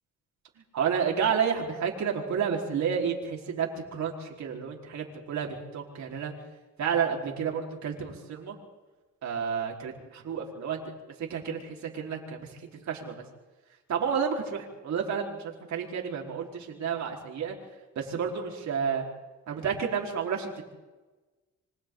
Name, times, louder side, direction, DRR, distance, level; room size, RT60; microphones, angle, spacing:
voice 1, 0.7-6.3 6.8-8.6 9.2-10.8 11.2-13.2 13.9-15.4 15.7-17.6 17.9-19.0 19.5-20.6, right 7 dB, 65° right, 0 dB, 4.6 m, -30 dB
26.5 x 24.5 x 4.0 m, 1.2 s
cardioid pair, 90°, 30 cm